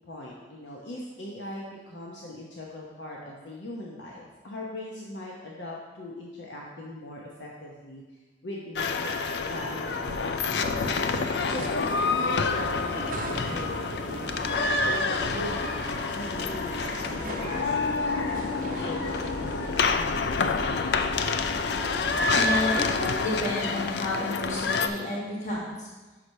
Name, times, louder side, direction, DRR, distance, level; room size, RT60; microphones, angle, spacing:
voice 1, 0.1-8.0 8.4-11.1 11.5-15.6 16.1-20.3, left 1 dB, 85° left, -3 dB, 0.9 m, -40 dB
sound 1, 8.8-24.9, left 4 dB, 65° left, 0.4 m, -28 dB
sound 2, 9.5-19.7, right 2 dB, 45° right, 0.5 m, -41 dB
sound 3, 12.3-23.5, equal, 15° left, 1.3 m, -40 dB
voice 2, 22.3-25.9, left 1 dB, 40° left, -5 dB, 1.5 m, -31 dB
5.9 x 4.9 x 5.4 m, 1.2 s
head